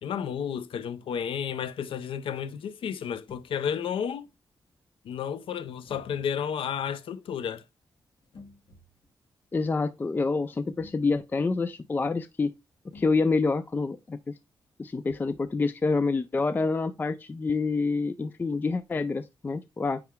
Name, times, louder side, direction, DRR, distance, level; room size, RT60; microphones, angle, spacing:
voice 1, 0.0-4.3 5.0-7.6, left 8 dB, 85° left, 0.5 m, -32 dB
sound 1, 3.3-3.5 5.8-6.4 8.2-9.1 10.7-11.2 12.9-13.4 15.1-15.5, left 3 dB, 70° left, 2.0 m, -52 dB
voice 2, 9.5-12.5 12.9-14.4 14.8-20.0, left 4 dB, 20° left, 0.3 m, -27 dB
9.4 x 3.3 x 3.6 m
wide cardioid pair, 150°, 9 cm